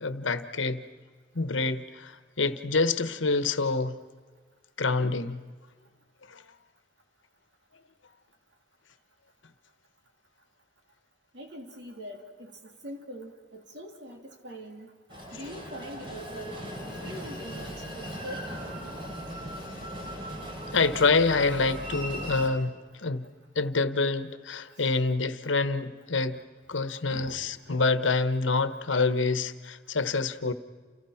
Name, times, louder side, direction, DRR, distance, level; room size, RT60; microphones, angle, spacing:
voice 1, 0.0-0.8 1.3-4.0 4.8-5.4 6.3-6.4 20.7-23.2 23.5-26.4 26.7-30.5, left 3 dB, 85° left, 1.2 m, -27 dB
voice 2, 11.3-14.9 15.3-18.5 24.8-25.0 27.1-27.8, equal, 65° right, 3.1 m, -43 dB
Train, 15.1-22.5, equal, 25° right, 4.0 m, -38 dB
29.5 x 29.5 x 5.9 m
head